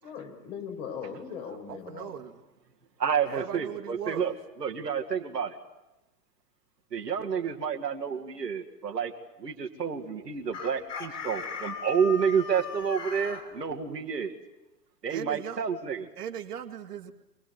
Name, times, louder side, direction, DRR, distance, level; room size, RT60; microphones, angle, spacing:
voice 1, 0.0-2.2, left 7 dB, 50° left, 3 dB, 5.2 m, -39 dB
voice 2, 1.4-2.4 3.3-4.4 15.1-15.6 16.2-17.1, right 9 dB, 70° right, 4 dB, 2.2 m, -39 dB
voice 3, 3.0-5.6 6.9-9.1 9.4-14.3 15.0-16.1, right 7 dB, 90° right, 4 dB, 2.4 m, -29 dB
Chicken rooster, 10.5-13.4, left 5 dB, 25° left, 4.1 m, -37 dB
25.5 x 20.0 x 9.5 m, 0.95 s
hypercardioid pair, 120°, 47 cm